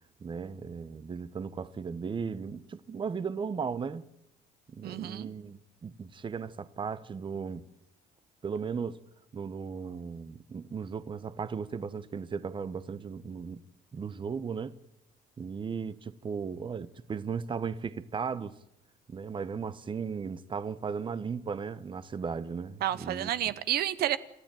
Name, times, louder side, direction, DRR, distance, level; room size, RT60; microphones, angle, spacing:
voice 1, 0.2-4.0 4.7-7.7 8.4-9.0 9.3-13.6 13.9-14.8 15.4-18.6 19.1-23.3, right 6 dB, 30° right, 1.1 m, -36 dB
voice 2, 4.8-5.3 22.8-24.2, right 12 dB, 70° right, 1.0 m, -30 dB
28.5 x 13.0 x 9.1 m
cardioid pair, 110°, 17 cm